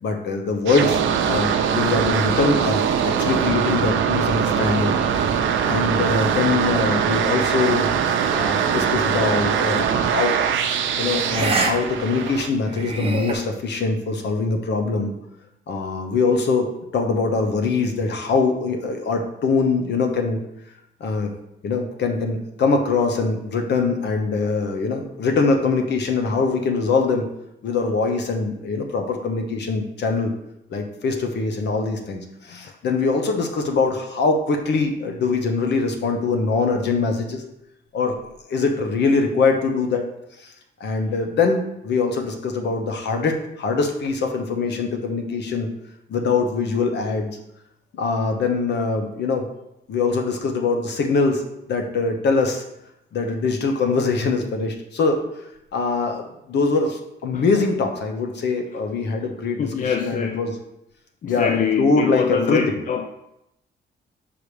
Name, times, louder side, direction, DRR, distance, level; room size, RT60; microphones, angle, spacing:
voice 1, 0.0-5.0 5.6-7.9 8.3-10.4 11.0-15.1 15.7-20.4 21.0-21.3 21.6-27.2 27.6-30.3 30.7-37.4 37.9-38.2 38.5-40.0 40.4-40.5 40.8-45.7 46.1-47.4 47.9-49.5 49.9-51.4 51.7-52.6 53.1-60.5 61.3-62.6, left 4 dB, 60° left, 4 dB, 1.0 m, -23 dB
sound 1, 0.7-12.5, right 7 dB, 85° right, 0.7 m, -22 dB
sound 2, 9.7-9.9 11.3-11.7 12.1-12.2 12.7-13.3, right 4 dB, 30° right, 0.9 m, -25 dB
voice 2, 59.6-60.4 61.2-63.1, left 7 dB, 40° left, 5 dB, 0.4 m, -24 dB
5.7 x 5.1 x 5.0 m, 0.84 s
wide cardioid pair, 155°, 20 cm